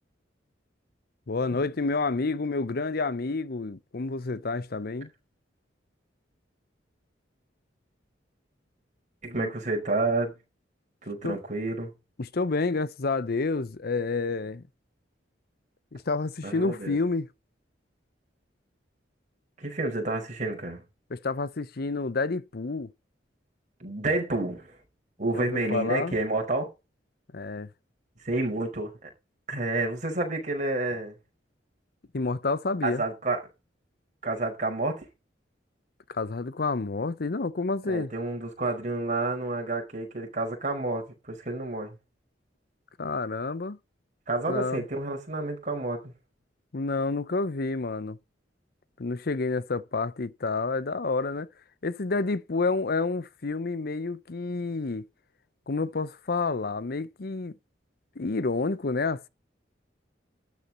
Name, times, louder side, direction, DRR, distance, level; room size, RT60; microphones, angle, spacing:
voice 1, 1.3-5.1 9.4-9.5 11.2-11.4 12.2-14.6 15.9-17.3 21.1-22.9 25.3-26.2 27.3-27.7 32.1-33.0 36.1-38.1 43.0-43.8 44.5-44.8 46.7-48.2 49.0-51.5 51.8-55.0 55.7-57.5 58.2-59.3, left 3 dB, 55° left, 0.7 m, -29 dB
voice 2, 9.2-10.3 11.0-11.9 16.4-17.0 19.6-20.8 23.8-24.8 25.2-26.7 28.2-29.1 29.5-31.1 32.8-33.4 34.2-35.1 37.9-42.0 44.3-46.1, right 2 dB, 45° right, 5.3 m, -29 dB
12.5 x 8.5 x 4.2 m
head